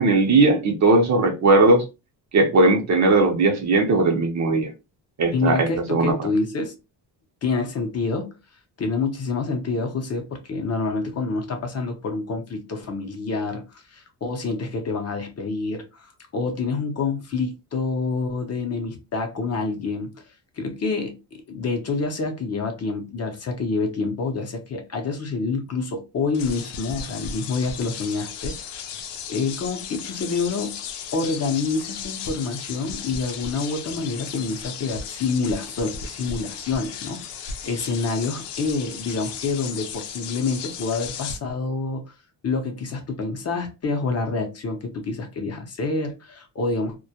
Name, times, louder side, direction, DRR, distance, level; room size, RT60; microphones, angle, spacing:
voice 1, 0.0-1.8 2.3-4.7 5.2-6.1, right 2 dB, 45° right, 0.6 m, -18 dB
voice 2, 5.3-6.7 7.4-8.4 8.8-28.9 29.3-30.8 31.1-37.2 37.6-42.2 42.4-47.0, left 4 dB, 40° left, 0.6 m, -27 dB
sound 1, 26.3-41.4, left 6 dB, 80° left, 0.6 m, -35 dB
2.2 x 2.0 x 2.7 m
cardioid pair, 115°, 41 cm